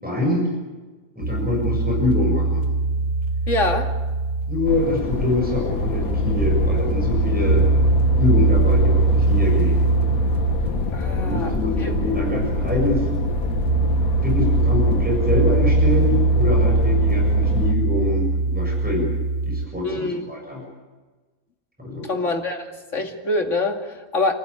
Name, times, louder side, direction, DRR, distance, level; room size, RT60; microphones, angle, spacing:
voice 1, 0.0-0.5 1.2-2.6 4.5-7.7 8.2-9.8 11.2-13.1 14.2-19.1 19.4-20.6 21.8-22.1, left 2 dB, 5° right, -1 dB, 6.9 m, -25 dB
sound 1, 1.2-19.7, right 3 dB, 90° right, 2.5 m, -21 dB
voice 2, 3.5-3.9 10.9-11.5 11.8-11.9 19.8-20.2 22.1-22.7 22.9-24.3, left 2 dB, 60° left, 3 dB, 2.7 m, -24 dB
sound 2, 4.7-17.7, left 4 dB, 85° left, 1.8 m, -27 dB
29.5 x 15.0 x 9.8 m, 1.3 s
omnidirectional pair, 1.5 m